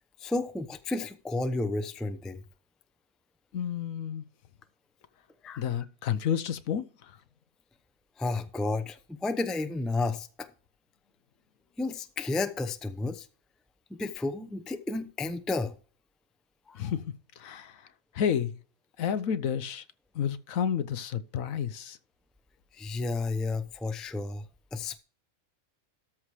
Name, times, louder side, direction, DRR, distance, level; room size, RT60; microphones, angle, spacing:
voice 1, 0.2-2.4 5.4-5.6 8.2-10.5 11.8-13.3 13.9-15.7 16.7-16.9 22.7-24.4 24.7-25.0, left 3 dB, ahead, 0.4 m, -32 dB
voice 2, 3.5-4.2 5.6-7.1 16.7-17.8 18.1-18.6 19.0-19.8 20.1-22.0, left 8 dB, 70° left, 1.2 m, -31 dB
13.5 x 4.8 x 4.8 m
omnidirectional pair, 1.5 m